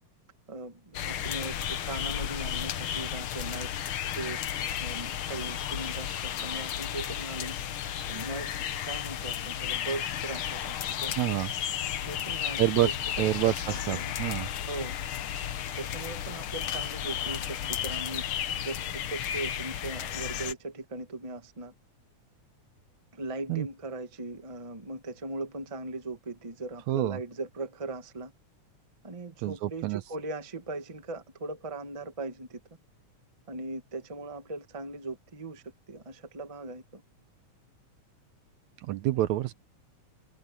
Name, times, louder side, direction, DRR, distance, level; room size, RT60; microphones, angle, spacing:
voice 1, 0.5-3.8 4.1-4.4 4.8-7.6 8.1-8.6 8.8-11.1 12.0-14.1 14.7-15.0 15.7-18.2 18.6-21.7 23.1-28.3 29.0-32.6 33.5-37.0 39.1-39.3, right 2 dB, 20° right, 1.0 m, -39 dB
sound 1, 0.9-20.5, left 10 dB, 65° left, 1.3 m, -33 dB
voice 2, 11.2-11.5 12.6-12.9 13.2-14.5 23.5-23.7 26.9-27.2 29.4-30.0 38.9-39.5, right 14 dB, 75° right, 1.9 m, -27 dB
omnidirectional pair, 3.6 m